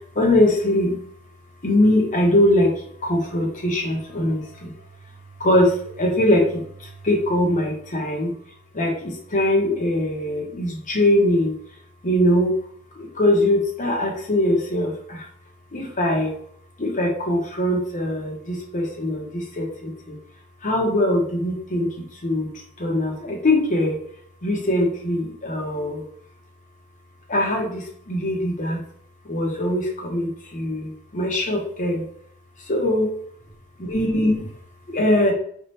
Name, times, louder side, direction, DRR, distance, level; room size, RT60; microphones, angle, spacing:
voice 1, 0.1-1.0 1.6-2.7 3.0-4.7 5.4-8.3 8.7-11.5 12.0-12.6 12.9-15.3 15.7-16.3 16.8-20.2 20.6-22.5 22.8-24.0 24.4-26.0 27.3-28.8 29.2-32.0 32.7-33.1 33.8-34.5 34.9-35.3, left 1 dB, 35° left, -1 dB, 1.0 m, -22 dB
5.6 x 3.3 x 2.9 m, 0.62 s
head